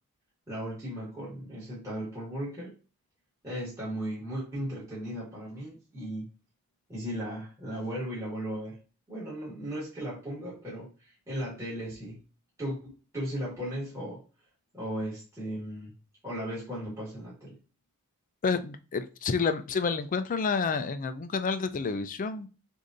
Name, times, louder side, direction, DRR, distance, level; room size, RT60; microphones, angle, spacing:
voice 1, 0.5-2.7 3.4-6.3 6.9-8.8 9.1-12.2 12.6-14.2 14.7-15.9 16.2-17.6, equal, 15° right, -9 dB, 2.0 m, -36 dB
voice 2, 18.4-22.5, left 5 dB, 40° left, 10 dB, 0.4 m, -29 dB
6.5 x 2.6 x 2.6 m, 0.34 s
head